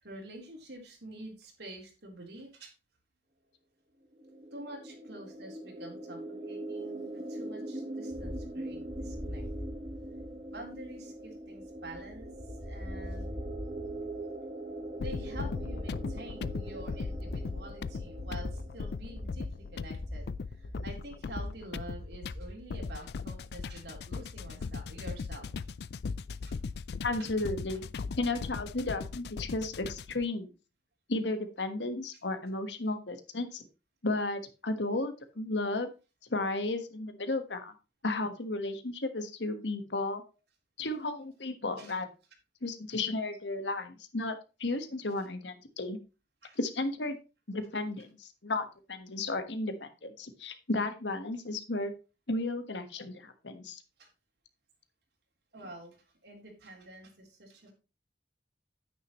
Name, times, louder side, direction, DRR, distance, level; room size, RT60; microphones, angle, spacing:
voice 1, 0.0-2.7 4.5-9.4 10.5-12.3 12.6-13.4 15.0-25.5 26.4-26.6 41.8-41.9 46.4-46.6 54.0-54.1 55.5-57.7, right 1 dB, 70° right, 1 dB, 3.4 m, -47 dB
sound 1, 4.1-19.8, right 1 dB, 35° right, 1.4 m, -42 dB
sound 2, 8.1-23.0, left 1 dB, 10° left, 0.8 m, -43 dB
sound 3, 15.0-30.3, left 4 dB, 65° left, 0.4 m, -39 dB
voice 2, 27.0-27.8 28.2-30.5 31.1-33.6 34.0-35.9 36.3-37.7 38.0-40.2 40.8-42.1 42.6-46.0 46.6-47.2 47.5-51.9 52.3-53.8, left 2 dB, 85° left, 8 dB, 1.4 m, -34 dB
9.5 x 9.4 x 3.1 m, 0.30 s
head